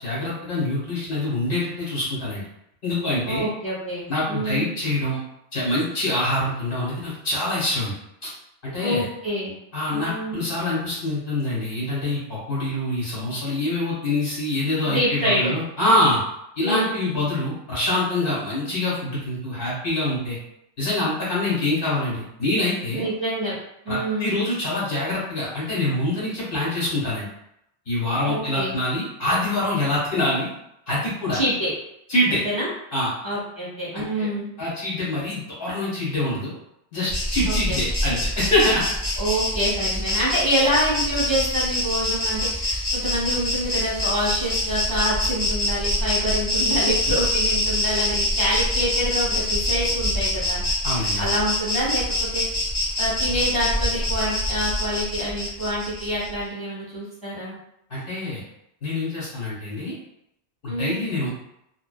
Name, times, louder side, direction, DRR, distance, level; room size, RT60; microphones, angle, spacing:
voice 1, 0.0-2.4 2.8-3.5 4.1-5.2 5.5-8.0 8.6-9.0 9.7-16.2 16.6-20.4 20.8-23.1 23.9-27.3 27.8-30.5 30.9-31.4 32.1-32.4 32.9-33.1 33.9-34.3 34.6-36.6 36.9-38.9 50.8-51.3 57.9-58.4 58.8-59.9 60.6-61.3, left 1 dB, 55° left, -8 dB, 1.5 m, -25 dB
voice 2, 3.2-4.7 8.8-9.6 9.9-10.4 14.8-15.6 16.6-17.1 22.9-23.5 23.8-24.4 28.3-28.7 31.3-31.7 32.3-32.7 33.2-34.5 37.5-37.8 39.2-50.6 51.2-52.5 53.0-57.6 60.7-61.1, equal, 5° left, -9 dB, 1.2 m, -26 dB
Insect, 37.1-56.3, left 1 dB, 25° left, 0.7 m, -25 dB
2.7 x 2.1 x 2.3 m, 0.79 s
omnidirectional pair, 1.1 m